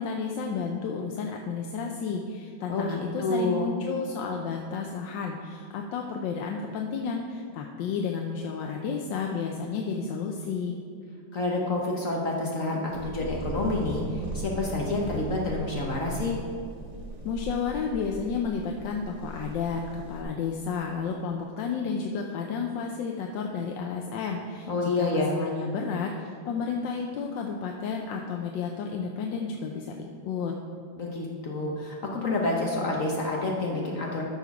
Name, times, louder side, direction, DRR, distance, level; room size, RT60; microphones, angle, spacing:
voice 1, 0.0-10.8 17.2-19.8 20.1-24.7 25.0-29.9 30.2-30.5, left 5 dB, 80° left, 1 dB, 1.3 m, -32 dB
voice 2, 2.7-3.7 11.3-16.4 24.7-25.3 31.0-34.2, left 2 dB, 50° left, -2 dB, 1.2 m, -28 dB
sound 1, 12.9-20.2, right 2 dB, 65° right, 2.1 m, -38 dB
13.0 x 4.4 x 5.9 m, 2.2 s
omnidirectional pair, 2.0 m